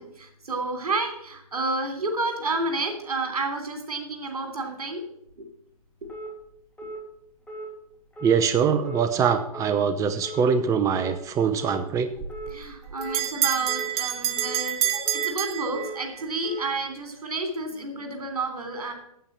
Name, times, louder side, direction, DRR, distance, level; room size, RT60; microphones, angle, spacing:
voice 1, 0.0-5.0 5.4-5.5 12.2-18.9, right 2 dB, 80° right, 5 dB, 3.2 m, -30 dB
sound 1, 6.1-6.3 6.8-7.0 7.5-7.7 8.1-8.4 8.8-9.1 9.5-9.7 10.2-10.4 10.9-11.1 11.6-11.8 12.3-12.5 13.0-13.2 13.7-13.9 14.4-14.6 15.0-15.3 15.7-15.9 16.4-16.6, right 2 dB, 5° left, 3.2 m, -37 dB
voice 2, 8.2-12.1, right 6 dB, 15° right, 9 dB, 0.7 m, -23 dB
Bell, 12.2-16.3, right 11 dB, 45° right, 1.4 m, -28 dB
9.2 x 8.3 x 7.3 m, 0.76 s
hypercardioid pair, 120°, 19 cm